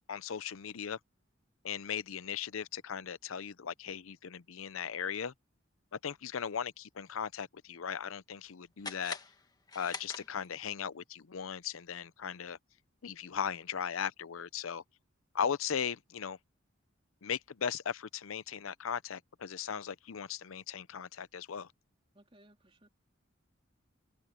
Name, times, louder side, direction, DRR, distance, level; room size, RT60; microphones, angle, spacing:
voice 1, 0.1-1.0 1.6-5.3 6.0-9.2 9.7-12.6 13.0-14.8 15.3-16.4 17.2-21.7, left 7 dB, 85° left, 0.6 m, -37 dB
sound 1, 8.8-10.7, left 4 dB, 20° left, 1.3 m, -44 dB
voice 2, 22.1-22.9, right 1 dB, 25° right, 3.7 m, -61 dB
head